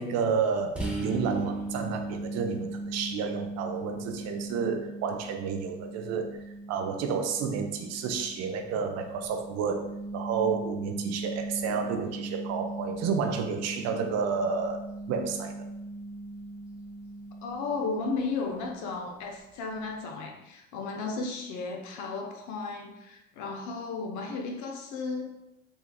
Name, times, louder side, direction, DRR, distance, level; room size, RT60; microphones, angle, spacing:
voice 1, 0.0-6.4 6.7-15.7, right 6 dB, 55° right, 5 dB, 0.5 m, -31 dB
sound 1, 0.8-18.3, right 2 dB, 5° right, 0.8 m, -38 dB
voice 2, 17.4-25.3, left 4 dB, 60° left, 2 dB, 0.7 m, -34 dB
3.6 x 2.8 x 2.2 m, 0.89 s
hypercardioid pair, 60°, 32 cm